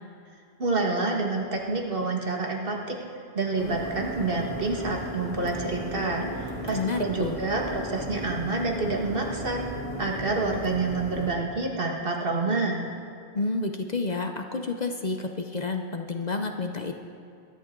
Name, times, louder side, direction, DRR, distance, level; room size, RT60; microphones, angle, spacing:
voice 1, 0.6-3.0 3.3-12.8, right 3 dB, 60° right, 0 dB, 1.8 m, -28 dB
sound 1, 3.6-11.4, right 1 dB, 25° left, 2.2 m, -36 dB
voice 2, 6.7-7.4 13.3-16.9, left 3 dB, 45° left, 5 dB, 0.8 m, -30 dB
22.5 x 11.0 x 3.8 m, 2.4 s
omnidirectional pair, 1.1 m